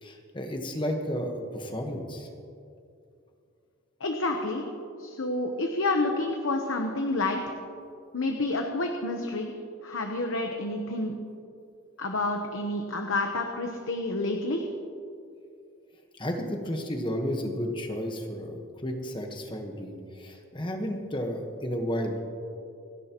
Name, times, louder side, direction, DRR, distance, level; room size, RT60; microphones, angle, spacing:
voice 1, 0.0-2.3 16.2-22.2, equal, 20° left, 3 dB, 1.3 m, -32 dB
voice 2, 4.0-4.6 5.0-7.5 8.1-9.5 9.8-11.1 12.0-14.6, left 2 dB, 70° left, 3 dB, 1.0 m, -29 dB
28.5 x 10.5 x 3.0 m, 2.5 s
head